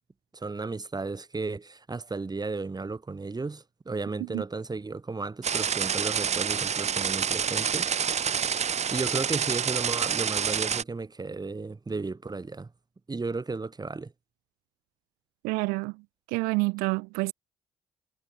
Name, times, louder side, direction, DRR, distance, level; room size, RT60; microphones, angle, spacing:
voice 1, 0.3-7.9 8.9-12.7 13.1-14.1, right 3 dB, 25° right, 4.1 m, -34 dB
sound 1, 5.4-10.8, right 7 dB, 50° right, 1.9 m, -28 dB
voice 2, 15.4-15.9 16.3-17.3, right 28 dB, 80° right, 2.2 m, -28 dB
hypercardioid pair, 50°, 15 cm